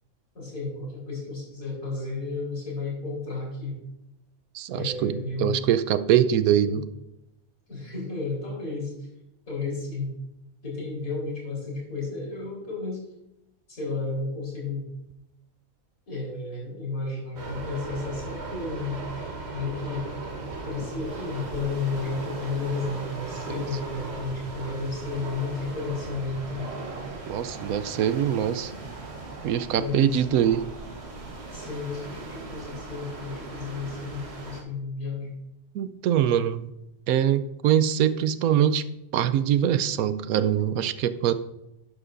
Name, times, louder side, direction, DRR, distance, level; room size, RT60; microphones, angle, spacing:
voice 1, 0.3-3.8 4.7-5.6 6.7-6.8 7.7-8.9 9.5-10.1 10.6-13.0 13.7-14.9 16.1-19.0 19.5-20.1 20.6-26.7 29.7-30.4 31.5-35.3, left 3 dB, 75° left, -3 dB, 4.3 m, -32 dB
voice 2, 4.5-6.9 27.3-28.7 29.4-30.6 35.7-36.7 37.1-38.8 39.1-41.3, right 10 dB, 85° right, 12 dB, 1.1 m, -23 dB
sound 1, 17.4-34.6, right 3 dB, 50° right, 1.5 m, -38 dB
12.0 x 10.0 x 2.5 m, 0.88 s
omnidirectional pair, 1.5 m